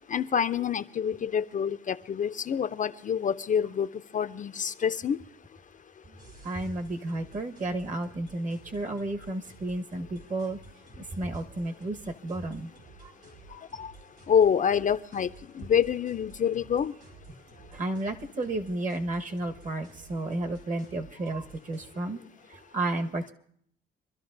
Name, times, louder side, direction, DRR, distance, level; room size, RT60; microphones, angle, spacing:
voice 1, 0.1-3.9 4.1-5.2 13.5-13.9 14.3-16.9, left 8 dB, 40° left, 11 dB, 0.5 m, -27 dB
sound 1, 6.2-21.9, right 4 dB, 75° right, 5.4 m, -53 dB
voice 2, 6.4-10.6 11.0-12.7 13.0-13.1 17.7-22.2 22.5-23.3, right 2 dB, 40° right, 5 dB, 1.3 m, -32 dB
25.5 x 12.0 x 2.6 m, 0.65 s
cardioid pair, 90°, 20 cm